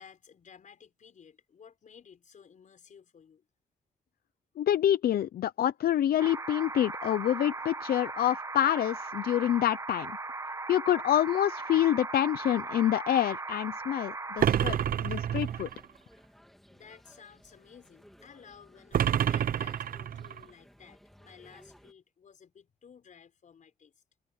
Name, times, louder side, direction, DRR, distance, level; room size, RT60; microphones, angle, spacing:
voice 1, 0.0-3.5 4.6-4.7 16.5-23.9, left 7 dB, 55° left, 5.2 m, -55 dB
voice 2, 4.6-10.1 10.7-14.8 15.0-15.7, left 11 dB, 90° left, 0.6 m, -27 dB
sound 1, 6.2-14.5, right 3 dB, 20° right, 1.2 m, -38 dB
sound 2, 14.4-15.9 18.9-20.4, right 9 dB, 70° right, 0.7 m, -28 dB
sound 3, 15.3-21.9, equal, ahead, 2.8 m, -58 dB
wide cardioid pair, 140°, 15 cm